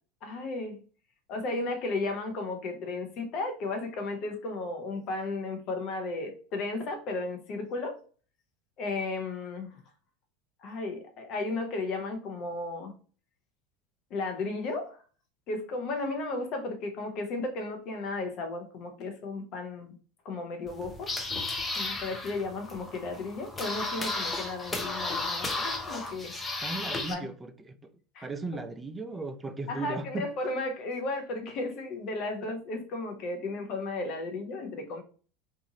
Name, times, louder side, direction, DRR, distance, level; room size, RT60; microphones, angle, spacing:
voice 1, 0.2-0.8 1.3-8.0 8.8-9.8 10.6-12.9 14.1-15.0 15.5-19.9 20.2-21.1 21.8-26.4 26.8-27.3 28.1-28.3 29.7-35.0, left 3 dB, 50° left, 0.8 m, -34 dB
sound 1, 20.7-27.1, left 2 dB, 20° left, 0.6 m, -34 dB
voice 2, 26.6-27.9 28.2-30.3, right 3 dB, 15° right, 0.4 m, -36 dB
2.7 x 2.5 x 2.7 m
hypercardioid pair, 80°, 0 cm